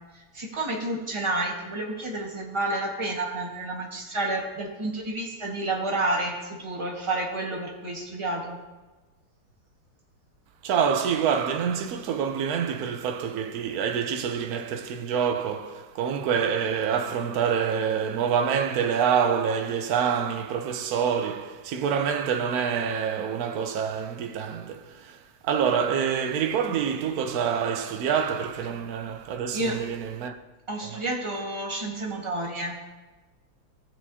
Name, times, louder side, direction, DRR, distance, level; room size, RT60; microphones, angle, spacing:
voice 1, 0.3-8.6 29.5-29.8 30.7-32.8, right 2 dB, 15° right, 1.3 m, -30 dB
voice 2, 10.6-30.4 30.9-31.0, right 7 dB, 85° right, 0.8 m, -26 dB
15.5 x 7.4 x 2.8 m
omnidirectional pair, 2.3 m